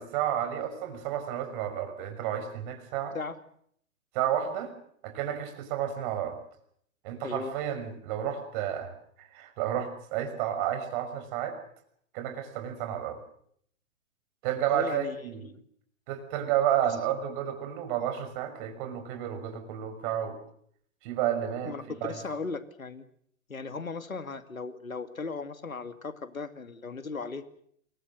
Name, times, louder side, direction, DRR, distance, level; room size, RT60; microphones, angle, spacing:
voice 1, 0.0-3.2 4.1-4.7 5.0-6.4 7.0-8.9 9.2-11.6 12.1-13.2 14.4-15.5 16.1-20.4 21.0-21.7 22.0-22.1, right 10 dB, 40° right, 7 dB, 5.9 m, -31 dB
voice 2, 7.2-7.6 14.7-15.6 16.8-17.0 21.6-23.0 23.5-27.4, left 4 dB, 85° left, 10 dB, 2.3 m, -37 dB
28.5 x 23.0 x 6.6 m, 0.67 s
figure-of-eight pair, 120°, 40 cm